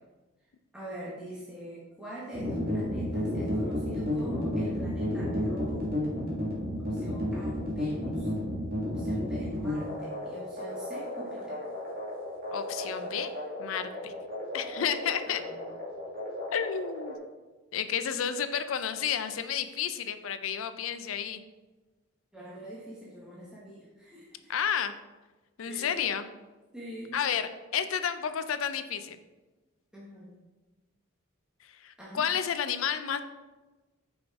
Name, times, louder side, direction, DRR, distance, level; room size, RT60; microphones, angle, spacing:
voice 1, 0.7-5.9 6.9-8.3 8.8-11.6 15.3-15.6 22.3-24.5 25.6-26.0 26.7-27.2 29.9-30.3 32.0-32.2, right 1 dB, 5° right, -7 dB, 1.0 m, -44 dB
sound 1, 2.3-17.1, left 1 dB, 45° right, 1.8 m, -32 dB
voice 2, 12.5-13.3 13.6-14.1 14.5-15.4 16.5-17.2 17.7-21.4 24.5-24.9 25.6-26.3 27.1-29.2 31.8-33.2, left 8 dB, 85° left, 10 dB, 0.5 m, -31 dB
6.0 x 5.0 x 3.6 m, 1.2 s
head